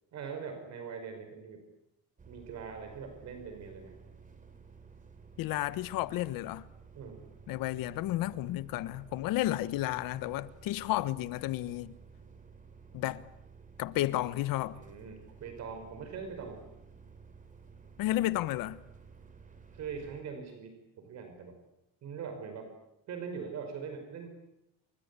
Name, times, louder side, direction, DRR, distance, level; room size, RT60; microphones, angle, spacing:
voice 1, 0.1-1.6 2.3-4.0 6.9-7.2 14.7-16.6 19.7-21.6 22.0-22.7 23.1-24.3, right 6 dB, 50° right, 5.3 m, -42 dB
sound 1, 2.2-20.2, right 5 dB, 25° right, 3.7 m, -54 dB
voice 2, 5.4-6.7 7.5-11.9 12.9-13.2 13.8-14.8 18.0-18.8, left 15 dB, 80° left, 1.4 m, -32 dB
29.5 x 24.5 x 8.4 m
cardioid pair, 160°, 34 cm